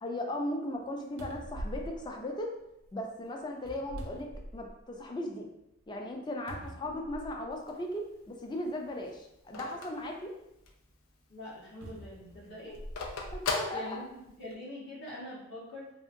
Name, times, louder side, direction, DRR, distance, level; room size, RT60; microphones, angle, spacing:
voice 1, 0.0-2.6 2.9-5.5 5.9-10.3 13.3-14.0, left 1 dB, 20° left, 1 dB, 0.3 m, -37 dB
sound 1, 0.8-0.9 1.2-2.9 3.6-5.0 5.4-5.5 6.5-7.6 8.5-8.6 11.8-13.5 14.2-14.3, right 1 dB, 65° right, 0.4 m, -43 dB
Telephone, 7.5-10.9 11.3-11.4 11.7-14.5, left 3 dB, 90° left, 0.5 m, -38 dB
voice 2, 11.3-12.8 13.7-15.9, left 1 dB, 60° left, -7 dB, 1.2 m, -44 dB
2.7 x 2.6 x 2.5 m, 0.85 s
head